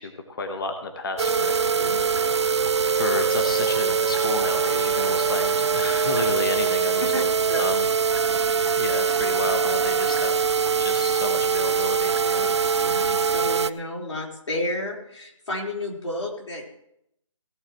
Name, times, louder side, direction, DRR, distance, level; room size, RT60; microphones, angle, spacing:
voice 1, 0.0-1.5 1.9-2.3 2.9-7.2 7.5-7.9 8.8-10.5 10.8-12.2, left 3 dB, 40° left, 4 dB, 1.4 m, -31 dB
sound 1, 1.2-13.7, right 6 dB, 55° right, 0.5 m, -23 dB
voice 2, 8.3-8.7 12.2-16.6, left 1 dB, 65° left, -2 dB, 4.3 m, -32 dB
17.0 x 12.0 x 3.1 m, 0.77 s
figure-of-eight pair, 165°, 17 cm